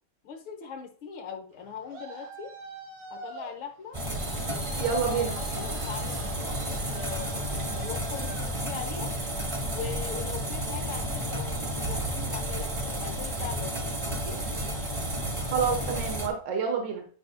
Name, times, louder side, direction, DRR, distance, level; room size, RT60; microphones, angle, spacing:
voice 1, 0.2-2.5 3.1-4.0 4.5-9.1 9.7-14.4, left 7 dB, 75° left, 2 dB, 2.0 m, -41 dB
Traffic noise roadway noise, 1.5-9.2, right 3 dB, 85° right, 3.1 m, -45 dB
sound 1, 3.9-16.3, right 1 dB, 20° right, 0.9 m, -32 dB
voice 2, 4.8-5.4 15.5-17.1, right 6 dB, 65° right, 4 dB, 2.0 m, -28 dB
10.0 x 5.5 x 2.2 m, 0.43 s
omnidirectional pair, 2.2 m